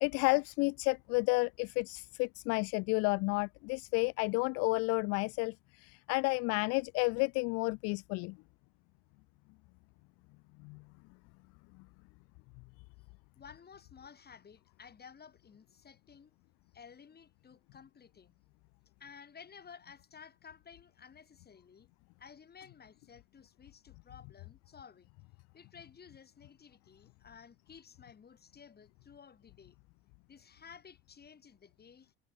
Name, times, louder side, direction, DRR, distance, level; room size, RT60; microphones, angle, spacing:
voice 1, 0.0-8.4 10.6-10.8, left 29 dB, 55° left, 0.4 m, -31 dB
voice 2, 13.4-16.3 16.7-18.3 19.0-21.9 22.2-25.1 25.5-29.8 30.3-32.1, left 6 dB, 30° left, 7.3 m, -55 dB
hypercardioid pair, 65°, 30 cm